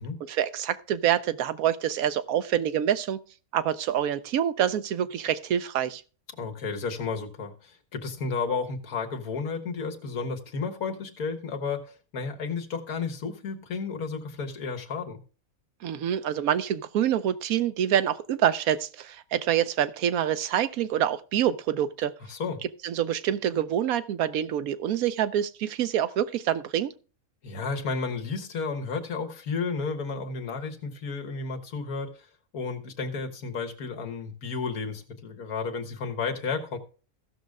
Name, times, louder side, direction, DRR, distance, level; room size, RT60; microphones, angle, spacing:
voice 1, 0.3-3.2 3.5-6.0 15.8-22.1 22.8-26.9, right 10 dB, 80° right, 1.2 m, -26 dB
voice 2, 6.4-15.2 22.3-22.6 27.4-32.3 32.5-36.8, left 4 dB, 85° left, 1.8 m, -32 dB
15.5 x 6.5 x 3.5 m
omnidirectional pair, 1.5 m